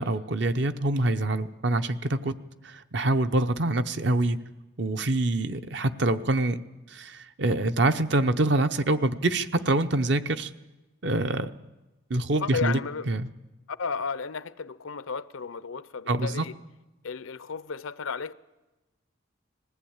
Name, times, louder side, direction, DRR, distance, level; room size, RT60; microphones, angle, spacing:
voice 1, 0.0-2.3 2.6-4.4 4.8-6.6 6.9-10.5 11.0-11.5 12.1-12.8 13.1-13.3 16.1-16.4, right 2 dB, 55° right, 0.7 m, -25 dB
voice 2, 12.4-13.1 13.7-16.6 17.0-18.3, left 5 dB, 80° left, 0.6 m, -33 dB
20.5 x 14.5 x 8.7 m
head